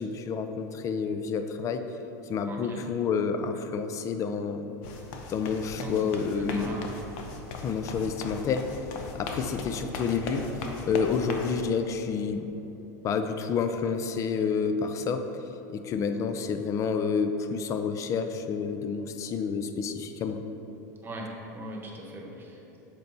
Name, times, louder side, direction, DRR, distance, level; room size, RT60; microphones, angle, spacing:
voice 1, 0.0-1.8 2.3-4.7 5.3-6.8 7.6-8.7 9.1-10.5 10.8-12.5 13.0-15.3 15.7-20.4, left 5 dB, 35° left, 8 dB, 0.4 m, -29 dB
voice 2, 2.5-2.8 5.8-6.1 6.4-6.8 21.0-22.8, right 1 dB, 20° right, -1 dB, 1.2 m, -39 dB
sound 1, 4.8-11.5, left 3 dB, 60° left, 0.7 m, -38 dB
6.9 x 4.5 x 4.0 m, 3.0 s
supercardioid pair, 110°, 10 cm